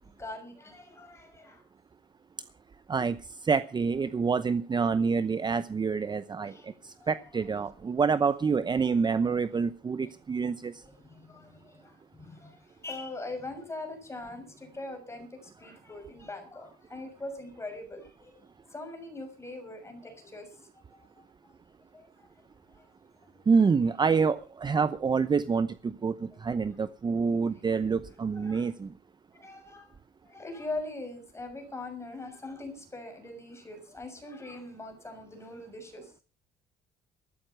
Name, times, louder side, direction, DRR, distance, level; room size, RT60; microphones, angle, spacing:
voice 1, 0.0-1.6 6.4-6.7 7.0-7.2 10.8-18.4 18.7-21.2 21.9-22.3 22.7-22.9 28.3-28.7 29.3-29.9 30.2-36.1, left 2 dB, 15° left, 5 dB, 6.5 m, -42 dB
voice 2, 3.4-10.7 23.5-28.9, right 5 dB, 25° right, 14 dB, 0.8 m, -27 dB
14.0 x 13.0 x 5.8 m, 0.36 s
cardioid pair, 110°, 17 cm